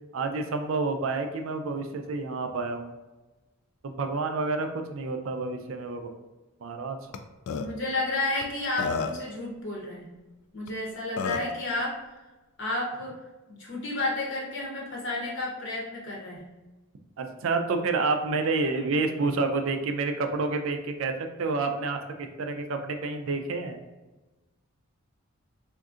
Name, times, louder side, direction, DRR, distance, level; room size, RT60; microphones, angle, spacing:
voice 1, 0.1-2.9 3.8-6.1 6.6-7.0 17.2-23.8, right 3 dB, 65° right, 6 dB, 0.4 m, -29 dB
Burping eructation, 7.1-7.2 7.5-7.7 8.4-8.5 8.8-9.3 10.7-10.8 11.2-11.5, left 5 dB, 80° left, 0.3 m, -30 dB
voice 2, 7.5-10.1 10.5-12.0 12.6-13.1 13.5-16.4, left 2 dB, 55° left, -3 dB, 0.7 m, -31 dB
3.6 x 2.5 x 2.4 m, 1.1 s
head